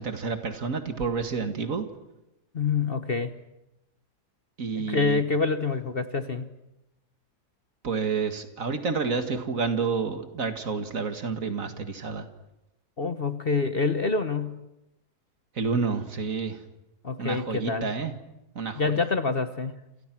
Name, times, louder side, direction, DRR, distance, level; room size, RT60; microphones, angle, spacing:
voice 1, 0.0-1.9 4.6-5.2 7.8-12.3 15.6-16.6 17.2-18.1 18.6-19.1, right 5 dB, 55° right, 8 dB, 2.2 m, -29 dB
voice 2, 2.5-3.3 4.7-6.5 13.0-14.6 17.0-17.9 18.7-19.8, left 4 dB, 40° left, 10 dB, 1.2 m, -27 dB
29.5 x 28.5 x 6.1 m, 0.91 s
omnidirectional pair, 1.7 m